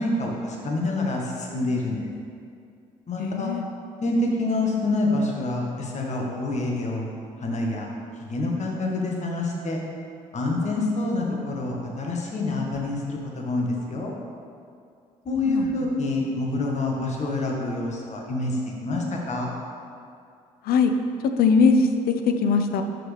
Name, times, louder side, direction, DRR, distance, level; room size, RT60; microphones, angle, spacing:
voice 1, 0.0-2.1 3.1-3.5 4.0-7.1 7.4-7.9 8.3-9.8 10.3-14.1 15.3-19.5, left 2 dB, 40° left, -1 dB, 1.7 m, -27 dB
voice 2, 3.2-3.6 10.8-10.9 15.4-15.9 20.6-20.9 21.4-21.9 22.2-22.8, left 5 dB, 60° left, 7 dB, 0.7 m, -21 dB
11.0 x 6.7 x 3.5 m, 2.4 s
hypercardioid pair, 50°, 18 cm